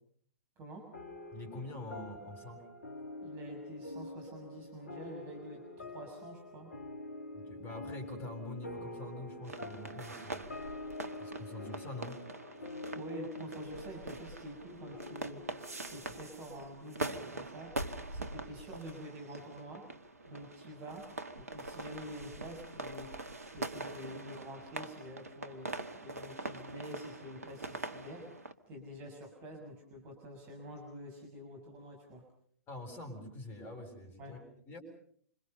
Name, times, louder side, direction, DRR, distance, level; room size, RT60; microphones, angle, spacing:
voice 1, 0.6-0.9 3.2-6.7 12.9-19.9 20.3-21.1 21.4-23.1 23.5-25.7 26.0-28.3 28.7-32.2 34.2-34.4, equal, 30° right, 2 dB, 6.6 m, -47 dB
sound 1, 0.9-17.7, left 2 dB, 70° left, 2.5 m, -47 dB
voice 2, 1.3-2.7 7.3-10.4 11.2-12.2 32.7-34.8, left 2 dB, 25° left, 5 dB, 7.5 m, -45 dB
sound 2, 9.4-28.5, right 2 dB, 75° right, 1.9 m, -43 dB
27.0 x 27.0 x 5.6 m, 0.62 s
figure-of-eight pair, 110°, 8 cm